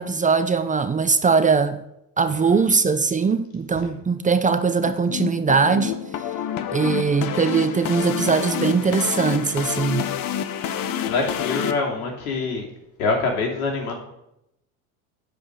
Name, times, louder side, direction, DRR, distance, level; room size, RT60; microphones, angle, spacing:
voice 1, 0.0-1.8 2.2-5.9 6.7-10.1, right 5 dB, 20° right, 0.7 m, -21 dB
sound 1, 4.9-11.7, left 9 dB, 50° left, 1.1 m, -28 dB
voice 2, 11.0-12.7 13.0-13.9, left 3 dB, 85° left, 3.0 m, -25 dB
10.0 x 5.2 x 8.2 m
hypercardioid pair, 85°, 43 cm